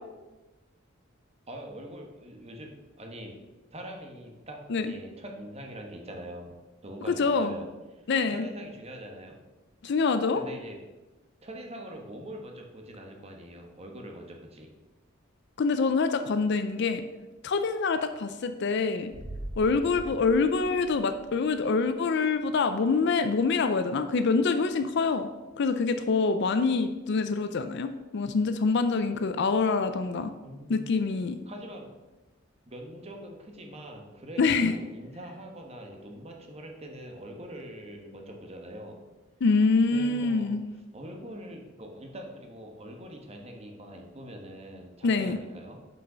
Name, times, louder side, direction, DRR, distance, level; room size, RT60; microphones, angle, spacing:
voice 1, 1.5-2.7 3.0-3.4 3.7-7.7 8.0-9.4 10.3-10.8 11.4-14.7 30.4-30.9 31.5-31.9 32.7-39.0 39.9-40.6 40.9-45.8, equal, 30° right, 2 dB, 1.2 m, -43 dB
voice 2, 7.1-7.6 8.1-8.4 9.8-10.4 15.6-17.1 17.4-19.1 19.6-25.3 25.6-30.3 30.7-31.4 34.4-34.8 39.4-40.6 45.0-45.4, left 4 dB, 60° left, 9 dB, 0.4 m, -25 dB
sound 1, 19.1-21.8 22.1-22.2, right 1 dB, 65° right, 1.1 m, -42 dB
6.4 x 5.4 x 5.6 m, 1.1 s
head